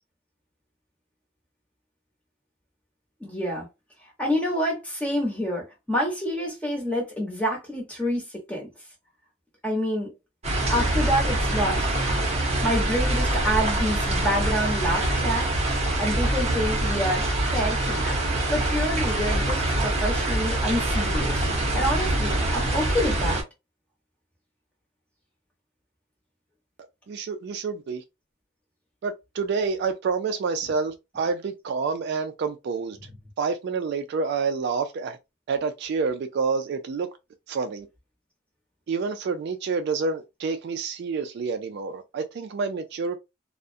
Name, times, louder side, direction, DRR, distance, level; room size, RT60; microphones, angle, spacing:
voice 1, 3.2-3.7 4.2-8.7 9.6-10.1 10.7-11.9 12.6-15.5 16.0-17.2 17.5-18.1 18.5-21.3 21.7-23.4, equal, 5° left, 0.8 m, -27 dB
sound 1, 10.4-23.4, right 1 dB, 30° right, 0.7 m, -24 dB
voice 2, 27.1-28.0 29.0-33.0 33.4-35.2 35.5-37.1 37.5-37.9 38.9-43.2, right 5 dB, 55° right, 0.3 m, -28 dB
2.3 x 2.0 x 2.5 m
head